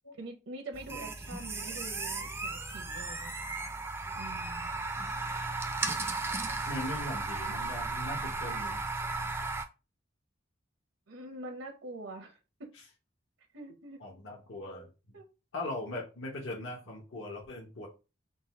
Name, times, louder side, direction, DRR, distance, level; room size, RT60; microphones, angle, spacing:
voice 1, 0.1-3.3 4.1-4.7 6.3-6.4 11.1-12.7 13.5-14.0 15.1-15.3, right 2 dB, 85° right, 0.8 m, -45 dB
sound 1, 0.7-9.6, right 3 dB, 10° right, 0.3 m, -35 dB
voice 2, 6.7-8.8 14.0-14.9 15.5-17.9, left 1 dB, 70° left, 0.9 m, -39 dB
3.9 x 2.3 x 4.1 m
head